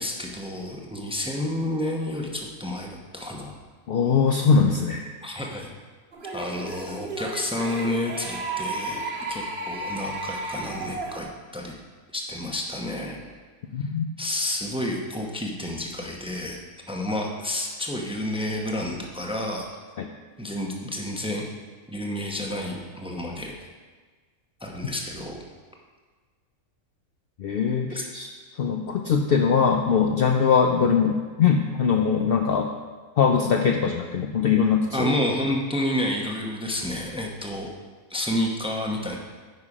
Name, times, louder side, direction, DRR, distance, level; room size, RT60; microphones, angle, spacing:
voice 1, 0.0-3.5 5.2-5.7 6.3-9.0 9.3-11.8 12.1-13.3 13.8-13.9 14.2-16.6 16.9-19.7 20.4-21.5 21.9-23.6 24.6-25.4 27.9-28.1 34.9-37.7 38.1-39.2, left 1 dB, 5° right, 0 dB, 0.7 m, -30 dB
voice 2, 3.9-5.0 13.7-14.1 20.0-20.1 27.4-28.3 28.6-32.7 33.2-35.1, left 6 dB, 60° left, 3 dB, 0.6 m, -21 dB
sound 1, 6.1-11.2, right 2 dB, 45° right, 1.0 m, -33 dB
9.6 x 5.6 x 4.9 m, 1.4 s
omnidirectional pair, 1.4 m